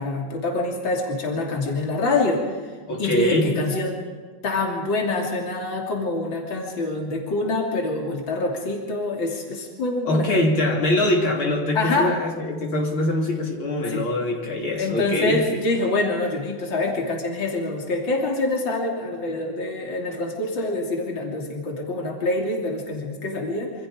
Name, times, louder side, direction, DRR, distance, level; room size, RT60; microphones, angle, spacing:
voice 1, 0.0-2.6 3.0-4.0 4.4-10.3 11.8-12.1 13.9-14.0 14.8-23.7, left 2 dB, 65° left, 0 dB, 3.8 m, -25 dB
voice 2, 2.9-3.5 10.1-15.6, left 1 dB, 80° left, -1 dB, 4.0 m, -23 dB
27.0 x 26.0 x 5.1 m, 1.4 s
omnidirectional pair, 2.2 m